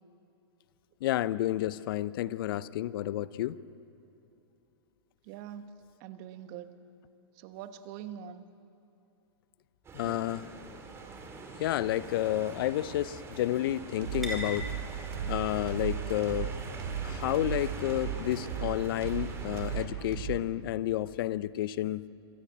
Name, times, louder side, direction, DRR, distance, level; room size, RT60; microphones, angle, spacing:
voice 1, 1.0-3.6 9.9-10.4 11.6-14.7 15.3-16.5 17.0-22.0, left 13 dB, 55° left, 17 dB, 0.6 m, -30 dB
voice 2, 5.2-5.7 6.0-6.7 7.3-8.5 10.0-10.2, right 10 dB, 45° right, 10 dB, 1.3 m, -43 dB
sound 1, 9.8-19.9, right 3 dB, 20° right, 3.0 m, -44 dB
sound 2, 10.6-18.5, left 1 dB, ahead, 5.3 m, -48 dB
sound 3, 14.0-20.3, right 9 dB, 70° right, 3.8 m, -36 dB
26.5 x 12.5 x 8.6 m, 2.9 s
hypercardioid pair, 125°, 14 cm